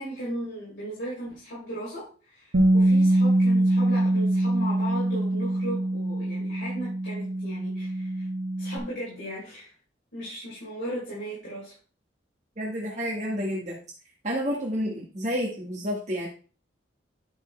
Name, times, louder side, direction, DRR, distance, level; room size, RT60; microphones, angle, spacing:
voice 1, 0.0-8.3 8.6-9.7 10.1-11.7, right 1 dB, 85° left, -9 dB, 5.0 m, -36 dB
Bass guitar, 2.5-8.8, right 1 dB, 75° right, 1.3 m, -23 dB
voice 2, 12.6-13.8 14.2-16.3, equal, 35° right, -2 dB, 1.4 m, -30 dB
10.5 x 4.3 x 4.4 m, 0.37 s
head